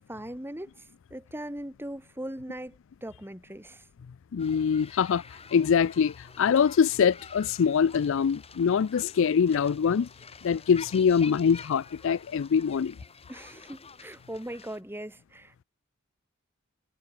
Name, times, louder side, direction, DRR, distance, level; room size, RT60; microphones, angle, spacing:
voice 1, 0.1-0.7 1.1-3.8 13.3-15.6, right 1 dB, 10° right, 2.6 m, -39 dB
voice 2, 4.3-5.2 5.5-10.1 10.4-12.9, left 7 dB, 65° left, 0.4 m, -24 dB
sound 1, 4.4-14.8, left 5 dB, 30° left, 5.1 m, -48 dB
head